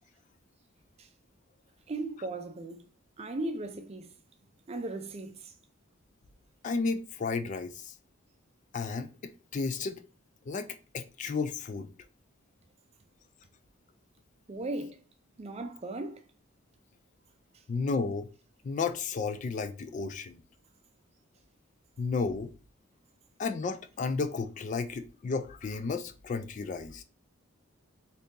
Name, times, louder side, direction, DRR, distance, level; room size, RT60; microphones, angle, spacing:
voice 1, 1.9-2.9 3.2-4.1 4.7-5.5 14.5-15.0 15.4-16.2, right 2 dB, 30° right, 0.4 m, -37 dB
voice 2, 6.6-7.9 8.7-10.0 10.5-10.7 10.9-11.9 17.7-18.3 18.6-20.4 22.0-22.5 23.4-27.0, left 4 dB, 35° left, 0.3 m, -33 dB
2.8 x 2.6 x 3.5 m
head